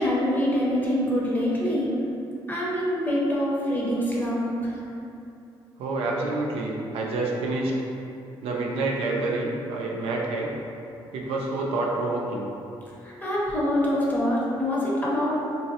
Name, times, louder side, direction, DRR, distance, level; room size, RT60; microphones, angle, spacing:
voice 1, 0.0-1.9 2.5-4.8 13.0-15.4, equal, 20° left, -6 dB, 0.8 m, -25 dB
voice 2, 5.8-7.8 8.4-10.5 11.1-12.5, right 2 dB, 90° right, -2 dB, 0.4 m, -28 dB
3.8 x 2.0 x 2.7 m, 2.7 s
cardioid pair, 90°, 10 cm